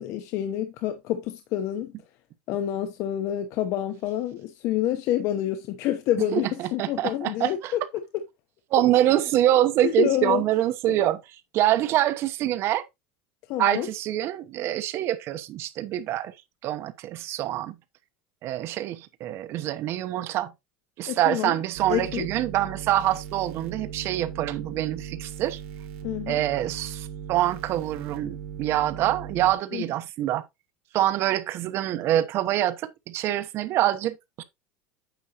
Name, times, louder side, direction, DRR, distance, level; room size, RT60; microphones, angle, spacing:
voice 1, 0.0-1.9 2.5-8.0 9.8-10.4 10.9-11.0 13.5-13.9 21.1-21.6 21.9-22.3 26.0-26.4 29.7-29.8, left 12 dB, 50° left, 0.9 m, -28 dB
voice 2, 6.3-7.7 8.7-11.2 11.5-12.8 13.6-16.3 16.6-17.7 18.4-20.5 21.0-25.6 26.3-30.4 30.9-34.4, right 13 dB, 40° right, 0.8 m, -25 dB
sound 1, 21.7-29.5, right 7 dB, 75° right, 2.6 m, -38 dB
9.1 x 6.1 x 2.9 m
supercardioid pair, 155°, 6 cm